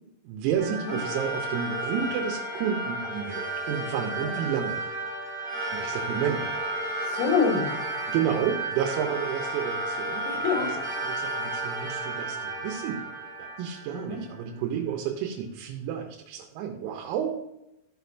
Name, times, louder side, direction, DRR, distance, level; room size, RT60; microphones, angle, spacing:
voice 1, 0.3-4.8 5.7-6.6 8.1-10.7 11.0-13.0 13.4-17.3, right 8 dB, 85° right, 2 dB, 3.6 m, -31 dB
sound 1, 0.5-14.3, right 2 dB, 30° right, 2.4 m, -32 dB
voice 2, 7.0-8.2 10.2-10.8 13.9-14.2, left 5 dB, 85° left, 1 dB, 4.3 m, -28 dB
14.0 x 6.3 x 2.7 m, 0.85 s
omnidirectional pair, 5.9 m